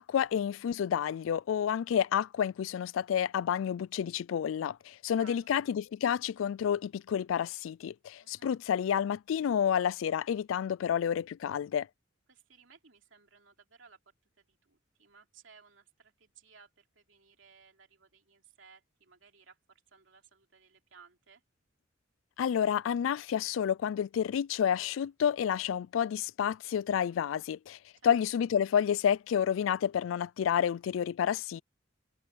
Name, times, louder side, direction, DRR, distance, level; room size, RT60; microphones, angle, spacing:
voice 1, 0.0-11.9 22.4-27.8 28.0-31.6, left 8 dB, 85° left, 0.3 m, -30 dB
voice 2, 5.1-5.5 8.2-8.5 12.3-14.0 14.4-21.4 28.0-28.2, right 5 dB, 75° right, 3.2 m, -59 dB
head